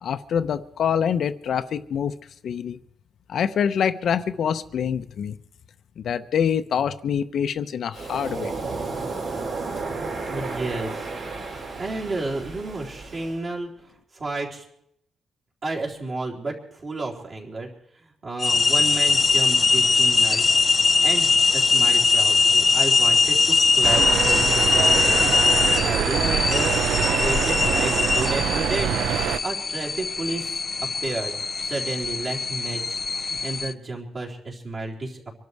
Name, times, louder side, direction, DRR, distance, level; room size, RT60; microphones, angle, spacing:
voice 1, 0.0-2.2 2.4-2.8 3.3-5.4 6.0-8.5, left 8 dB, 55° left, 0.7 m, -25 dB
Waves surf, 7.9-13.4, right 3 dB, 55° right, 4.9 m, -32 dB
voice 2, 10.2-11.1 11.7-13.7 14.1-14.7 15.6-17.7 18.0-20.5 21.0-25.4 25.8-26.9 27.2-29.1 29.4-30.6 31.0-31.4 31.6-35.2, right 2 dB, 35° right, 3.9 m, -32 dB
sound 1, 18.4-33.7, left 4 dB, 25° left, 0.6 m, -21 dB
sound 2, 23.8-29.4, right 9 dB, 75° right, 0.6 m, -24 dB
25.5 x 12.0 x 4.7 m
cardioid pair, 155°, 0 cm